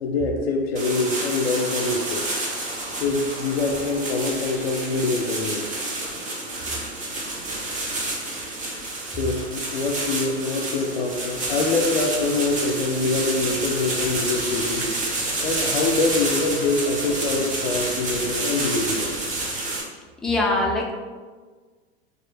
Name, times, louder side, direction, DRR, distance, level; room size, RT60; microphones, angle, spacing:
voice 1, 0.0-2.2 3.0-5.7 9.1-14.9 15.4-19.1, left 3 dB, 75° left, 1 dB, 0.5 m, -24 dB
sound 1, 0.7-19.8, right 2 dB, 25° right, 0.8 m, -29 dB
voice 2, 20.2-20.9, left 2 dB, ahead, -2 dB, 0.4 m, -22 dB
3.1 x 2.4 x 3.3 m, 1.4 s
hypercardioid pair, 90°, 31 cm